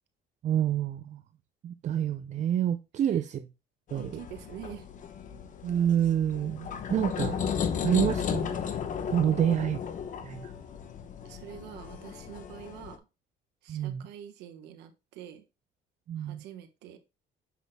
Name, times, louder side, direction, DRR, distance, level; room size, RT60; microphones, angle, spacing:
voice 1, 0.4-1.2 1.6-3.5 3.9-4.1 5.6-7.4 7.8-8.5 9.1-9.8 10.2-10.5 13.7-14.1 16.1-16.4, right 10 dB, 45° right, 0.5 m, -28 dB
sound 1, 3.9-13.0, left 7 dB, 50° left, 1.0 m, -35 dB
voice 2, 3.9-4.9 9.3-9.4 11.2-13.1 13.6-15.4 16.2-17.0, right 10 dB, 90° right, 1.2 m, -46 dB
7.3 x 5.9 x 2.2 m
cardioid pair, 110°, 17 cm